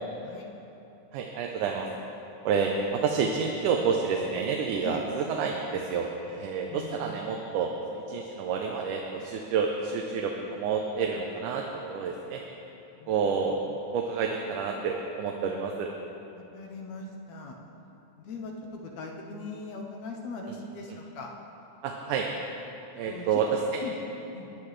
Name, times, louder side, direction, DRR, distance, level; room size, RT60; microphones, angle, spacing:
voice 1, 1.1-1.9 2.5-12.4 13.1-13.6 13.9-15.9 21.8-22.3 23.0-23.5, right 5 dB, 90° right, 1 dB, 2.3 m, -29 dB
voice 2, 6.7-7.3 13.0-13.3 16.3-17.6 18.2-21.3 23.1-23.5 23.8-23.9 24.3-24.5, left 3 dB, 70° left, 0 dB, 2.0 m, -40 dB
19.5 x 10.5 x 3.3 m, 2.9 s
omnidirectional pair, 3.5 m